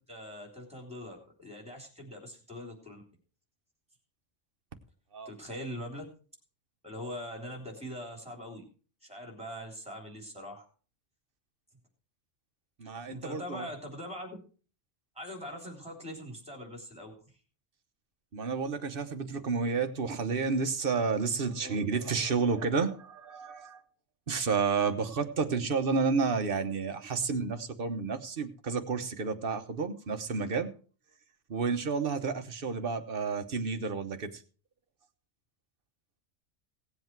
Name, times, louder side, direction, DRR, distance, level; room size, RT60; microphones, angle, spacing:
voice 1, 0.1-3.0 5.2-6.0 6.8-8.7 9.0-10.6 13.1-14.4 15.1-17.1 21.5-21.8, equal, 5° right, 1 dB, 3.3 m, -42 dB
voice 2, 12.8-13.7 18.3-23.8 24.3-30.7 31.5-34.4, right 5 dB, 50° right, 8 dB, 1.2 m, -31 dB
17.5 x 7.9 x 4.6 m, 0.40 s
omnidirectional pair, 1.2 m